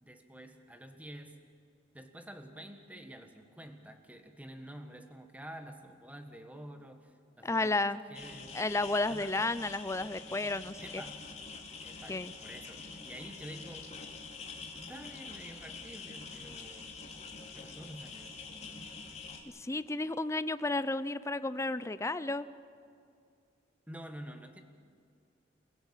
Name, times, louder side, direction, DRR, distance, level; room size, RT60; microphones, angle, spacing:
voice 1, 0.0-1.4 1.9-7.1 7.4-8.6 9.1-9.4 10.8-11.2 11.8-13.9 14.7-17.0 17.5-18.4 23.9-24.6, right 1 dB, 10° right, 6 dB, 1.5 m, -48 dB
voice 2, 7.4-8.0 8.5-10.8 12.1-12.3 19.5-22.5, left 2 dB, 15° left, 14 dB, 0.5 m, -32 dB
sound 1, 8.1-19.4, left 4 dB, 35° left, 2.7 m, -46 dB
28.5 x 16.5 x 7.4 m, 2.4 s
head